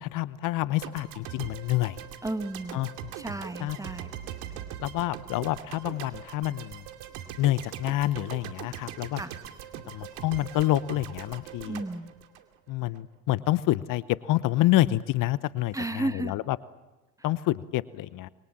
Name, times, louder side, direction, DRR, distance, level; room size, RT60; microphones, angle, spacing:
voice 1, 0.0-2.0 2.7-2.9 3.6-3.8 4.8-6.8 7.4-9.2 9.9-11.8 12.7-16.6 17.2-18.3, left 15 dB, 50° left, 18 dB, 0.9 m, -27 dB
sound 1, 0.8-13.0, right 10 dB, 70° right, 2.5 m, -41 dB
voice 2, 2.2-2.8 3.2-4.1 9.2-9.3 11.6-12.1 15.7-16.3, right 2 dB, 10° right, 11 dB, 1.4 m, -33 dB
27.0 x 22.5 x 7.5 m, 1.1 s
hypercardioid pair, 70°, 40 cm